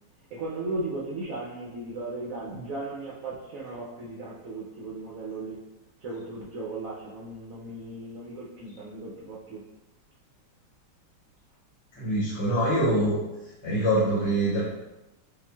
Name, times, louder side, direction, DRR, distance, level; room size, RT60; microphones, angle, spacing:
voice 1, 0.3-5.6 6.0-9.6, right 2 dB, 65° right, -5 dB, 0.9 m, -36 dB
voice 2, 12.0-13.2 13.6-14.6, right 1 dB, 85° left, -8 dB, 1.7 m, -24 dB
5.5 x 2.4 x 2.3 m, 0.99 s
omnidirectional pair, 1.9 m